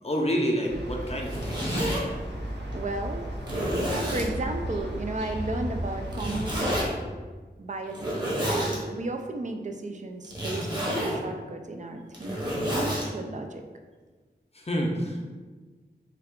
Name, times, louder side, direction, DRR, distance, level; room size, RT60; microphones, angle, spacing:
voice 1, 0.0-2.0 14.5-15.2, equal, 35° left, 0 dB, 0.6 m, -28 dB
sound 1, 0.7-6.9, equal, 75° right, 0.7 m, -35 dB
Zipper (clothing), 1.1-2.0 2.7-2.8 3.4-4.3 6.1-6.9 7.9-8.8 10.2-11.2 12.0-13.1, equal, 25° right, 0.9 m, -29 dB
voice 2, 2.7-3.3 4.1-6.8 7.6-13.6, right 2 dB, 45° right, 5 dB, 0.4 m, -34 dB
3.4 x 2.3 x 3.6 m, 1.4 s
wide cardioid pair, 50°, 18 cm